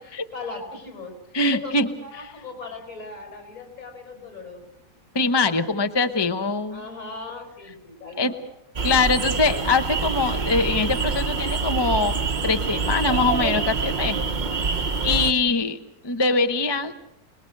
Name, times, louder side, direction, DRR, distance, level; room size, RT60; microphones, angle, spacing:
voice 1, 0.0-4.7 6.7-8.4, left 3 dB, 50° left, 5 dB, 6.1 m, -38 dB
voice 2, 1.3-1.9 5.1-6.8 8.2-8.3 8.8-14.2 15.0-15.8 16.0-16.9, left 3 dB, 20° left, 8 dB, 0.7 m, -23 dB
sound 1, 8.8-15.3, right 4 dB, 35° right, 0.8 m, -26 dB
27.5 x 20.5 x 6.5 m, 0.87 s
omnidirectional pair, 1.7 m